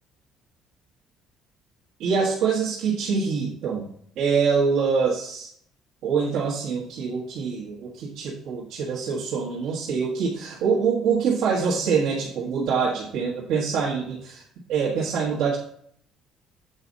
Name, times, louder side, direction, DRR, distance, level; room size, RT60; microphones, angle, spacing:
voice 1, 2.0-3.9 4.2-5.5 6.0-14.4 14.7-15.6, right 5 dB, 60° right, -5 dB, 1.6 m, -25 dB
8.0 x 5.0 x 4.0 m, 0.64 s
cardioid pair, 170°, 0 cm